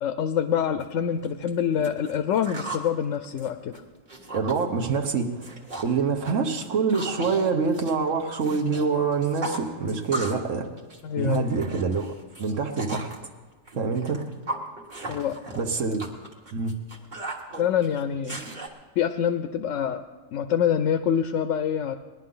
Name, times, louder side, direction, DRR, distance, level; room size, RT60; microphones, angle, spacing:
voice 1, 0.0-3.7 11.0-11.5 15.1-15.4 17.6-18.4 19.0-22.0, left 8 dB, 75° left, 9 dB, 0.9 m, -26 dB
sound 1, 0.8-0.9 1.2-2.9 3.2-4.6 4.9-5.2 5.4-6.0 6.2-8.8 9.1-10.5 10.8-13.2 13.7-18.7, right 2 dB, 35° right, 1.6 m, -37 dB
voice 2, 4.3-5.5 5.8-10.7 11.2-12.1 12.4-13.1 13.7-14.2 15.6-16.0 16.5-16.7, right 5 dB, 70° right, 3 dB, 1.4 m, -25 dB
20.0 x 11.0 x 3.9 m, 1.3 s
omnidirectional pair, 1.4 m